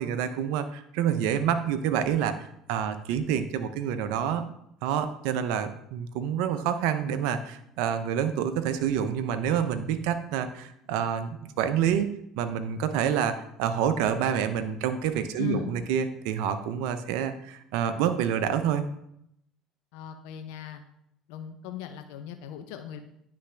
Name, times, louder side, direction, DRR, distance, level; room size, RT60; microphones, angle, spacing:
voice 1, 0.0-2.3 2.7-4.4 4.8-12.1 12.4-18.8, right 8 dB, 75° right, 10 dB, 0.5 m, -27 dB
voice 2, 15.4-15.9 19.9-20.8 21.3-23.0, left 10 dB, 75° left, 7 dB, 0.5 m, -38 dB
9.6 x 3.4 x 3.3 m, 0.75 s
hypercardioid pair, 75°, 0 cm